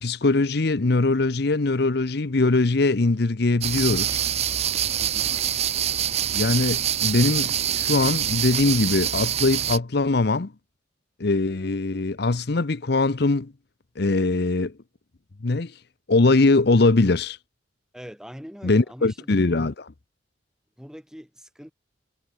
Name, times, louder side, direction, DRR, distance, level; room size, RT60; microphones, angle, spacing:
voice 1, 0.0-4.2 6.3-10.5 11.2-13.5 14.0-14.7 15.4-15.7 16.1-17.4 18.6-19.9, left 3 dB, 60° left, 0.8 m, -21 dB
sound 1, 3.6-9.8, right 10 dB, 35° right, 0.5 m, -25 dB
voice 2, 5.0-5.4 17.9-19.3 20.8-21.7, equal, 5° right, 2.5 m, -42 dB
head